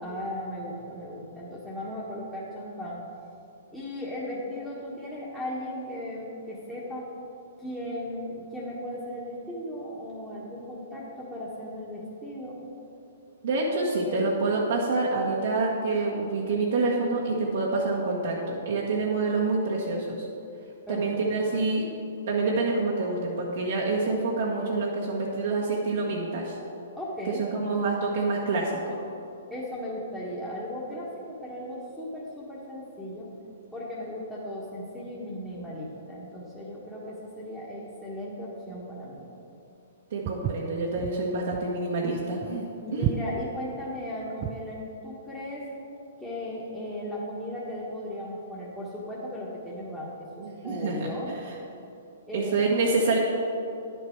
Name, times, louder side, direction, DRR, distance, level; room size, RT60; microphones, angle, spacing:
voice 1, 0.0-3.0 3.7-7.1 7.6-12.6 20.9-21.2 26.9-27.4 29.5-33.3 33.7-39.2 42.8-45.7 46.2-51.3 52.3-52.7, left 1 dB, 5° left, -9 dB, 1.5 m, -36 dB
voice 2, 13.4-20.2 20.9-21.9 22.3-26.6 27.4-29.0 40.1-42.6 42.9-43.1 50.4-51.1 52.3-53.2, right 3 dB, 70° right, -4 dB, 1.4 m, -27 dB
Walk footsteps, 40.2-44.7, right 10 dB, 35° right, 0.4 m, -33 dB
10.5 x 6.8 x 4.6 m, 2.7 s
hypercardioid pair, 130°, 0 cm